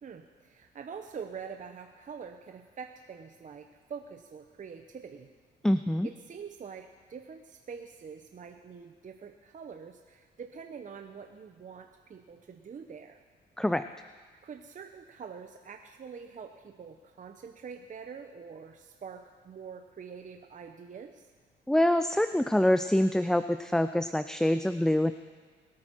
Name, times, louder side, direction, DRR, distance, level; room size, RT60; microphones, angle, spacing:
voice 1, 0.0-5.3 6.0-13.2 14.4-21.3, right 6 dB, 40° right, 5 dB, 0.8 m, -45 dB
voice 2, 5.6-6.1 13.6-13.9 21.7-25.1, left 1 dB, 5° left, 10 dB, 0.4 m, -25 dB
21.5 x 8.8 x 4.6 m, 1.5 s
cardioid pair, 90°, 20 cm